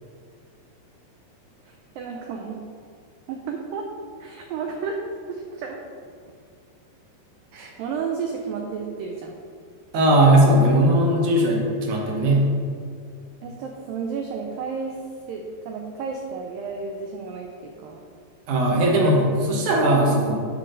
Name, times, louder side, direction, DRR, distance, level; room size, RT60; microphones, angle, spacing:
voice 1, 1.6-2.6 3.3-3.9 4.2-5.0 5.3-5.8 7.5-9.4 13.4-18.0, right 5 dB, 90° right, 2 dB, 2.0 m, -32 dB
voice 2, 9.9-12.5 18.5-20.4, right 1 dB, 70° right, -1 dB, 2.0 m, -18 dB
8.9 x 3.9 x 6.3 m, 2.2 s
omnidirectional pair, 4.7 m